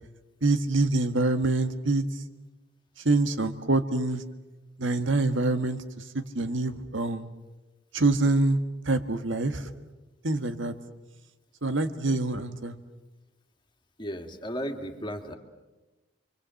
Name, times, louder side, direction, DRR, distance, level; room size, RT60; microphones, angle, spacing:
voice 1, 0.4-2.0 3.0-4.2 4.8-5.8 6.1-7.3 7.9-8.6 8.8-9.7 10.2-10.7 11.6-12.8, right 2 dB, 75° right, 9 dB, 1.6 m, -25 dB
voice 2, 14.0-15.4, equal, 25° left, 5 dB, 2.3 m, -35 dB
29.0 x 23.5 x 7.8 m, 1.1 s
head